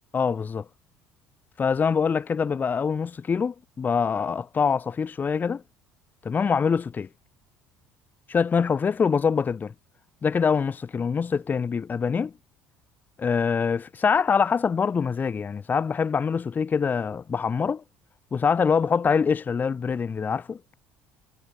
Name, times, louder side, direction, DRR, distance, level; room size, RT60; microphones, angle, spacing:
voice 1, 0.1-0.7 1.6-5.6 6.2-7.1 8.3-9.7 10.2-12.3 13.2-17.8 18.3-20.7, left 6 dB, 30° left, 0.8 m, -24 dB
figure-of-eight pair, 60°, 6 cm